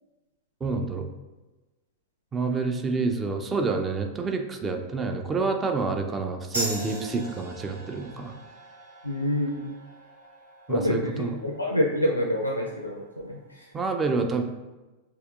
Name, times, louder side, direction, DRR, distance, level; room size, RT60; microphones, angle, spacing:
voice 1, 0.6-1.1 2.3-8.3 10.7-11.4 13.7-14.5, right 4 dB, 20° right, 5 dB, 0.5 m, -28 dB
sound 1, 6.5-13.6, right 1 dB, 75° right, 1.5 m, -40 dB
voice 2, 9.0-9.7 10.7-13.7, equal, 85° left, 0 dB, 0.4 m, -27 dB
6.0 x 2.9 x 2.4 m, 1.1 s
figure-of-eight pair, 90°, 0 cm